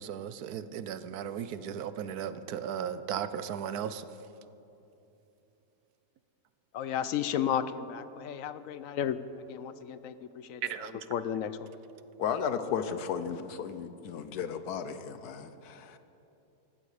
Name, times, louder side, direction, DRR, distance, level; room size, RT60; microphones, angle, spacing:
voice 1, 0.0-4.0 10.7-10.9, right 8 dB, 80° right, 13 dB, 1.2 m, -36 dB
voice 2, 6.7-9.2 9.5-11.5, left 9 dB, 70° left, 13 dB, 0.9 m, -33 dB
voice 3, 12.2-16.0, left 7 dB, 85° left, 10 dB, 1.4 m, -34 dB
19.0 x 15.0 x 5.0 m, 2.9 s
omnidirectional pair, 1.6 m